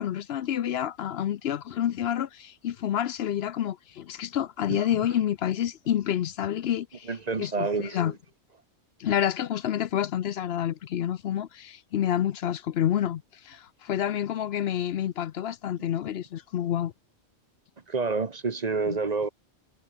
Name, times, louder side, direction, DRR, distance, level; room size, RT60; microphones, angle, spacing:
voice 1, 0.0-7.1 7.4-8.1 9.0-16.9, left 10 dB, 70° left, 0.8 m, -28 dB
voice 2, 7.1-8.1 17.9-19.3, right 4 dB, 40° right, 1.1 m, -28 dB
omnidirectional pair, 1.1 m